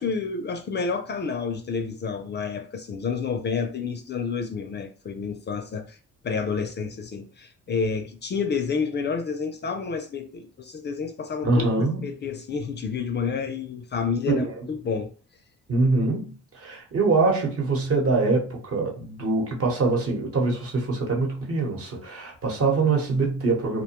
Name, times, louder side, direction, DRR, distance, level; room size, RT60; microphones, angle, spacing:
voice 1, 0.0-6.0 6.2-15.1, left 5 dB, 35° left, 0.4 m, -29 dB
voice 2, 11.4-12.0 14.3-14.5 15.7-16.3 16.6-23.8, right 3 dB, 50° right, 1.0 m, -24 dB
2.5 x 2.2 x 2.9 m
cardioid pair, 90°, 30 cm